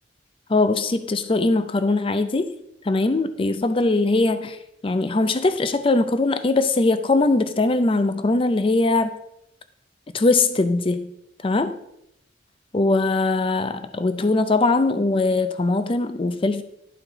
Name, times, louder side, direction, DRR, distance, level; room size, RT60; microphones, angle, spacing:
voice 1, 0.5-2.5 2.8-4.6 4.8-9.1 10.1-11.1 11.4-11.7 12.7-16.6, left 2 dB, 30° left, 10 dB, 0.5 m, -21 dB
11.5 x 4.2 x 4.0 m, 0.80 s
head